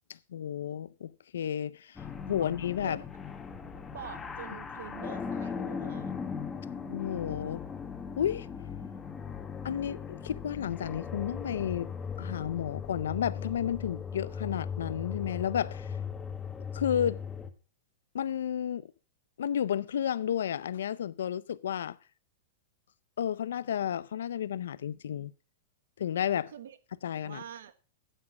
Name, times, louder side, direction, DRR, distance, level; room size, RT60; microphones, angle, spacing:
voice 1, 0.3-3.0 6.9-7.6 8.2-8.5 9.6-11.9 12.2-15.9 16.7-17.2 18.1-18.8 19.4-22.0 23.2-25.3 26.0-26.5 27.0-27.4, left 9 dB, 85° left, 0.5 m, -32 dB
sound 1, 2.0-17.5, left 6 dB, 15° left, 1.3 m, -38 dB
voice 2, 3.9-6.1 26.5-26.8 27.2-27.7, right 9 dB, 80° right, 1.2 m, -45 dB
9.8 x 7.4 x 5.8 m
hypercardioid pair, 140°, 0 cm